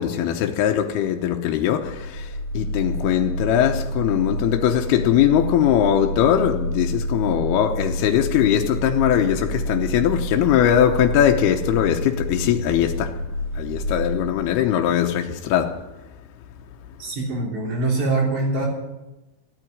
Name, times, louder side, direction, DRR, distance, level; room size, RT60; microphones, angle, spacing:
voice 1, 0.0-13.2 13.5-15.9, left 10 dB, 80° left, 2.8 m, -21 dB
sound 1, 1.8-14.3, right 1 dB, 90° right, 8.2 m, -28 dB
voice 2, 17.0-18.7, right 3 dB, 45° right, 4.7 m, -23 dB
16.0 x 9.0 x 9.3 m
omnidirectional pair, 4.8 m